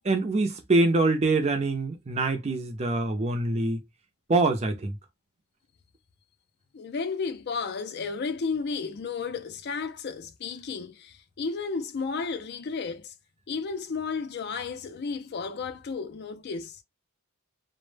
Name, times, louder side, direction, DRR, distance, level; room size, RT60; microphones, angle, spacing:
voice 1, 0.0-3.8 4.3-4.9, right 2 dB, 30° right, 0.5 m, -24 dB
voice 2, 6.7-13.1 13.5-16.8, left 5 dB, 50° left, 0.4 m, -33 dB
2.0 x 2.0 x 3.2 m
head